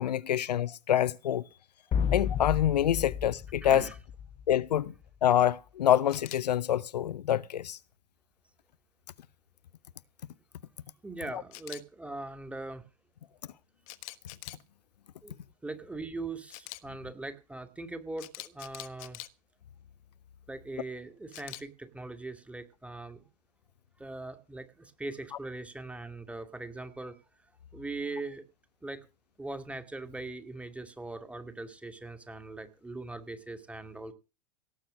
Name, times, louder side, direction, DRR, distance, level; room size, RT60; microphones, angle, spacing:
voice 1, 0.0-1.4 2.1-3.9 4.5-4.9 5.2-7.8 11.3-11.4, left 11 dB, 75° left, 0.6 m, -26 dB
sound 1, 1.9-4.8, left 7 dB, 30° left, 1.1 m, -32 dB
voice 2, 3.6-3.9 11.0-12.8 15.2-15.3 15.6-19.2 20.5-23.2 24.0-27.2 27.7-28.4 28.8-29.1 29.4-34.1, right 2 dB, 5° right, 2.4 m, -41 dB
Camera, 6.1-6.4 11.5-11.8 13.9-14.6 16.5-16.8 18.2-19.3 21.3-21.6, left 20 dB, 55° left, 1.2 m, -43 dB
17.5 x 8.5 x 6.5 m
figure-of-eight pair, 90°, 21 cm